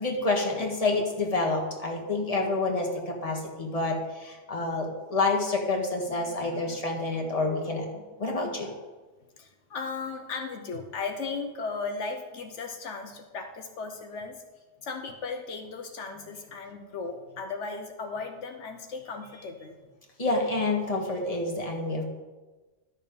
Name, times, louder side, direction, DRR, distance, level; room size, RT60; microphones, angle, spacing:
voice 1, 0.0-7.9 8.2-8.8 20.2-22.0, left 3 dB, 30° left, 0 dB, 1.7 m, -28 dB
voice 2, 2.1-2.4 6.2-6.8 7.1-7.4 7.9-8.4 9.4-14.4 14.8-19.8, left 4 dB, 80° left, 4 dB, 1.2 m, -37 dB
12.0 x 6.5 x 5.2 m, 1.2 s
omnidirectional pair, 1.2 m